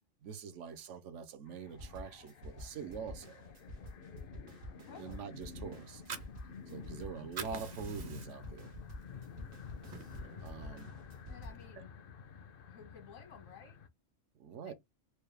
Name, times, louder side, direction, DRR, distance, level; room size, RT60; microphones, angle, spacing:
voice 1, 0.2-3.4 5.0-6.0 6.7-8.7 10.4-11.0 11.8-11.9 14.4-14.7, right 6 dB, 70° right, 0.9 m, -45 dB
sound 1, 1.5-13.9, left 6 dB, 60° left, 0.6 m, -51 dB
sound 2, 1.8-11.6, left 1 dB, 90° right, 1.4 m, -49 dB
voice 2, 4.8-5.3 11.3-12.0 12.7-13.8 14.6-14.7, left 7 dB, 85° left, 1.6 m, -54 dB
Fire, 5.8-7.0 7.2-8.6 9.0-9.2 9.5-10.5, right 5 dB, 45° right, 0.6 m, -45 dB
4.6 x 2.2 x 3.3 m
omnidirectional pair, 1.4 m